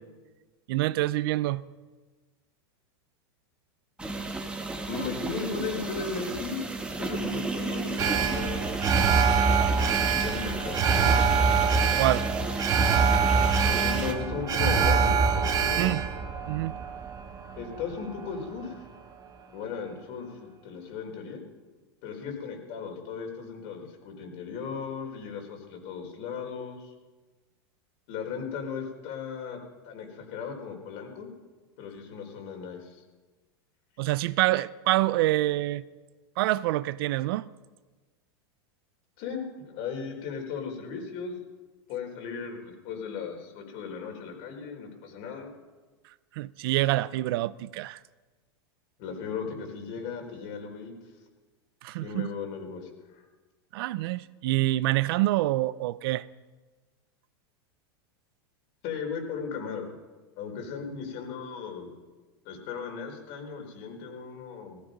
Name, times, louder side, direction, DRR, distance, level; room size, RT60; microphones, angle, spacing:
voice 1, 0.7-1.6 12.0-12.3 15.8-16.0 16.5-16.7 34.0-35.8 36.4-37.4 46.4-48.0 51.8-52.3 53.7-56.3, right 17 dB, 60° right, 0.6 m, -26 dB
sound 1, 4.0-14.1, right 3 dB, 10° right, 1.6 m, -33 dB
voice 2, 4.9-6.7 7.0-9.1 10.1-11.6 13.7-15.9 17.6-18.8 19.5-21.4 22.0-26.9 28.1-29.6 29.8-31.3 31.8-33.0 39.2-41.3 41.9-45.5 49.0-50.9 52.0-53.2 58.8-59.9 60.4-61.9 62.4-64.8, left 5 dB, 55° left, 4.5 m, -36 dB
Alarm, 8.0-18.2 18.6-18.7, right 5 dB, 25° right, 1.7 m, -25 dB
17.5 x 15.0 x 5.3 m
supercardioid pair, 130°, 14 cm